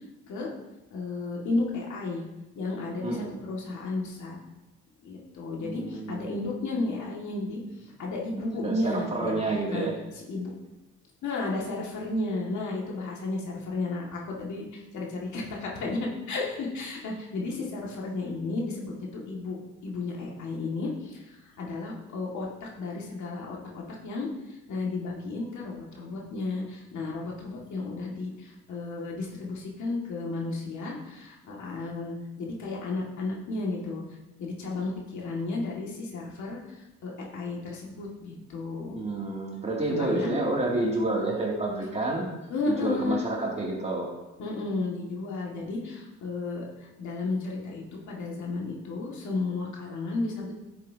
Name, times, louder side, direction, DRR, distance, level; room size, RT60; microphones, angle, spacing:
voice 1, 0.9-2.2 2.5-4.4 5.0-9.4 9.7-9.9 10.1-10.5 11.2-34.0 34.4-39.0 39.9-40.3 42.5-43.2 44.4-46.6 47.0-50.5, left 3 dB, 70° left, -2 dB, 2.1 m, -33 dB
voice 2, 3.0-3.3 5.6-6.4 8.5-9.9 38.9-42.3 42.7-44.1, right 2 dB, 20° right, -3 dB, 2.6 m, -29 dB
10.5 x 7.5 x 2.8 m, 1.0 s
cardioid pair, 90°, 30 cm